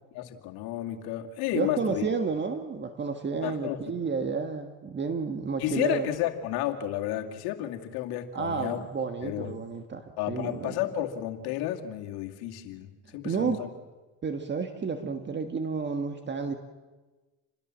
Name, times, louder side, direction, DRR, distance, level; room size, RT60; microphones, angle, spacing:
voice 1, 0.1-2.0 3.4-3.8 5.6-8.8 9.2-9.5 10.2-13.6, left 12 dB, 75° left, 4 dB, 2.4 m, -32 dB
voice 2, 1.5-6.1 8.3-10.8 13.2-13.7 14.2-16.6, right 5 dB, 30° right, 7 dB, 1.7 m, -31 dB
27.5 x 21.0 x 7.5 m, 1.3 s
supercardioid pair, 105°, 38 cm